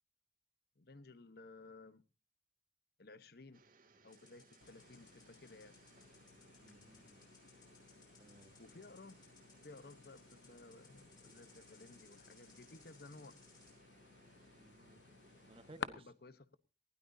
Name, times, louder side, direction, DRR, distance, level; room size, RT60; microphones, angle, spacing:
voice 1, 0.8-2.0 3.0-3.6 4.0-5.8 8.6-9.3 9.6-13.4 15.8-16.6, left 3 dB, 60° left, 1.0 m, -57 dB
sound 1, 3.5-15.8, right 3 dB, 50° right, 2.6 m, -67 dB
sound 2, 4.1-13.8, left 5 dB, 25° left, 7.4 m, -67 dB
sound 3, 4.6-15.9, left 5 dB, 90° left, 0.9 m, -55 dB
voice 2, 6.6-7.2 8.2-8.6 14.5-15.1 15.5-16.1, right 2 dB, 30° right, 1.4 m, -59 dB
19.5 x 16.5 x 2.7 m
head